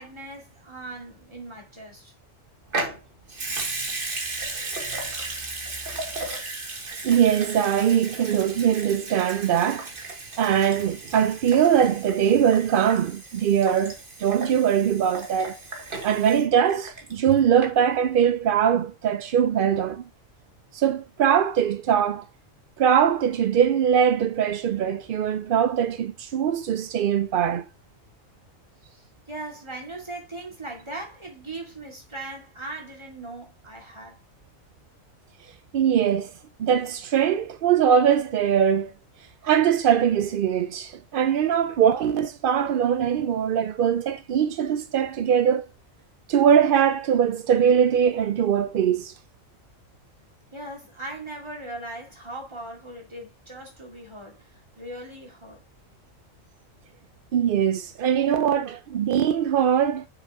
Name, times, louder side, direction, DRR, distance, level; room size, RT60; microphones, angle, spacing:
voice 1, 0.0-2.1 28.9-34.2 50.5-55.6, right 2 dB, 20° right, 2.4 m, -39 dB
Water tap faucet / Sink (filling or washing) / Liquid, 2.7-17.3 17.6-17.7, right 3 dB, 40° right, 1.7 m, -35 dB
voice 2, 7.0-9.9 10.4-15.6 16.0-20.1 20.7-22.3 22.8-27.7 35.7-36.3 36.6-38.9 39.4-45.7 46.3-49.1 57.3-60.1, right 8 dB, 65° right, 0.5 m, -21 dB
6.5 x 4.7 x 4.7 m
omnidirectional pair, 1.4 m